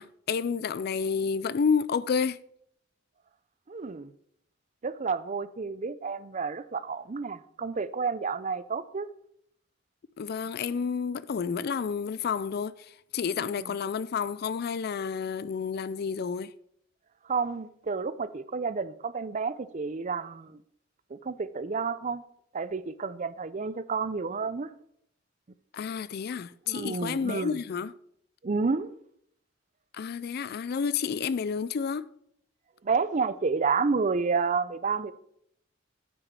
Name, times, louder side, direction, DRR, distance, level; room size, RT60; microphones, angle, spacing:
voice 1, 0.0-2.4 10.2-12.7 13.1-16.5 25.7-27.9 29.9-32.1, left 6 dB, 55° left, 0.4 m, -30 dB
voice 2, 3.7-4.1 4.8-9.1 13.4-13.7 17.3-20.6 21.1-22.2 22.5-24.7 26.7-27.6 28.4-28.9 32.8-35.1, right 4 dB, 40° right, 0.5 m, -30 dB
9.8 x 8.0 x 4.8 m
head